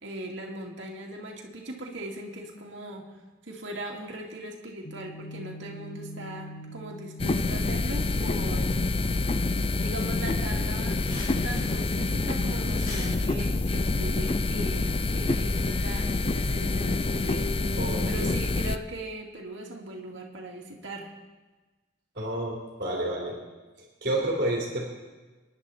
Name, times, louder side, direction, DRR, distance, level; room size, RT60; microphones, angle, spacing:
voice 1, 0.0-3.2 3.5-8.7 9.8-11.0 11.4-17.5 18.0-21.1, right 1 dB, 65° right, -1 dB, 2.4 m, -39 dB
sound 1, 4.8-18.8, equal, 70° left, 1.0 m, -45 dB
sound 2, 7.2-18.8, left 3 dB, 30° left, 0.4 m, -27 dB
sound 3, 10.5-14.5, left 1 dB, 45° left, 4.7 m, -44 dB
voice 2, 17.8-18.4 22.2-23.4 23.8-24.9, right 1 dB, 45° right, -3 dB, 3.4 m, -30 dB
26.5 x 10.5 x 4.3 m, 1.2 s
head